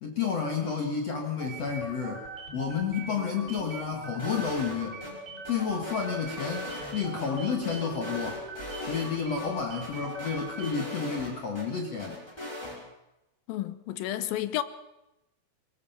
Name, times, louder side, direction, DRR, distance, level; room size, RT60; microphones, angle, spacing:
voice 1, 0.0-2.3 2.5-5.0 5.5-8.4 8.9-12.2, left 6 dB, 50° left, 2.5 m, -31 dB
sound 1, 1.4-10.9, right 3 dB, 30° right, 3.7 m, -42 dB
sound 2, 4.2-5.1 5.4-7.3 7.6-9.1 9.4-9.5 9.8-11.6 12.0-12.8, left 1 dB, 5° left, 4.8 m, -39 dB
voice 2, 13.5-14.6, left 14 dB, 75° left, 2.6 m, -31 dB
23.5 x 20.0 x 5.7 m
omnidirectional pair, 4.3 m